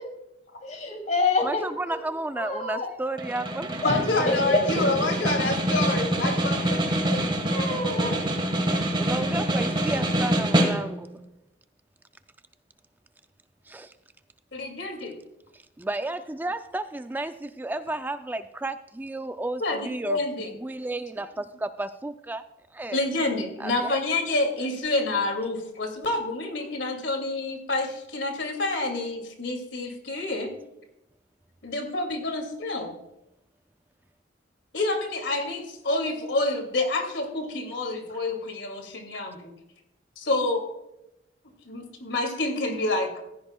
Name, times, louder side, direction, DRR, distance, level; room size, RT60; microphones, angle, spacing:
voice 1, 0.7-1.6 2.3-2.9 3.8-4.0 4.2-4.8 7.1-8.2, left 3 dB, 45° left, 3 dB, 2.9 m, -27 dB
voice 2, 1.4-3.7 4.2-4.3 5.0-5.3 8.9-11.1 13.7-13.9 15.5-22.4 22.7-23.0 23.6-24.0, right 2 dB, 10° right, 10 dB, 0.3 m, -32 dB
Snare drum, 3.2-11.1, right 1 dB, 25° right, 1.5 m, -26 dB
voice 3, 3.8-7.3 14.5-15.2 19.6-20.5 22.9-30.5 31.6-33.0 34.7-39.5 40.2-40.6 41.6-43.2, left 2 dB, 85° left, 4 dB, 2.4 m, -28 dB
15.5 x 14.0 x 2.3 m, 0.89 s
head